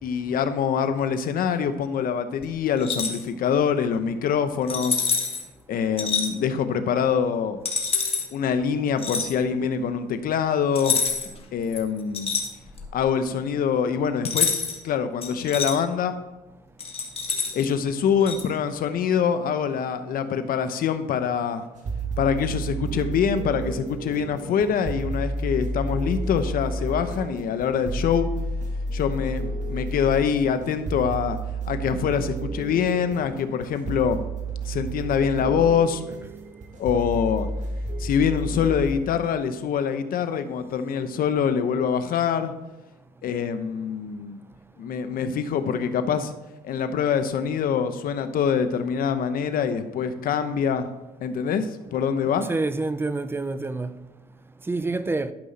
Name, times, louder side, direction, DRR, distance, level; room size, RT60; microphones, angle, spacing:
voice 1, 0.0-5.1 5.7-7.6 8.3-11.0 11.5-12.3 12.9-14.6 14.8-16.1 17.5-21.6 22.2-28.3 28.9-31.4 31.7-34.3 34.6-36.0 36.8-37.5 38.0-42.5 43.2-44.4 44.8-46.3 46.6-50.9 51.2-52.5, left 7 dB, 60° left, 0.9 m, -24 dB
sound 1, 2.8-3.2 4.7-5.4 6.0-6.3 7.6-8.3 9.0-9.3 10.7-11.4 11.7-12.9 14.2-14.8 15.2-15.7 16.8-17.7 18.3-18.4, left 5 dB, 35° left, 1.6 m, -26 dB
sound 2, 21.8-39.0, right 2 dB, 45° right, 1.4 m, -31 dB
voice 2, 52.5-53.9 54.7-55.3, right 3 dB, 15° right, 0.5 m, -27 dB
12.0 x 5.6 x 4.2 m
cardioid pair, 110°, 17 cm